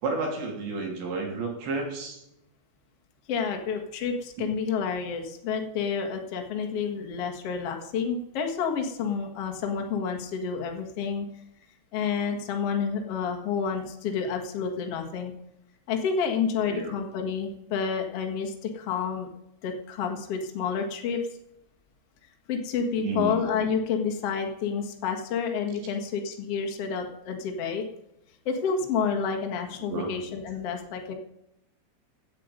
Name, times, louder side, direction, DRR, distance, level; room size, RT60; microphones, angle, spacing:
voice 1, 0.0-2.2 4.4-4.5 16.7-16.9 23.0-23.4 29.9-30.1, right 3 dB, 60° right, 1 dB, 5.0 m, -31 dB
voice 2, 3.3-11.2 11.9-15.3 15.9-19.3 19.6-21.2 22.5-27.8 28.4-31.2, left 6 dB, 85° left, 3 dB, 1.3 m, -29 dB
16.5 x 9.3 x 5.2 m, 0.84 s
omnidirectional pair, 5.8 m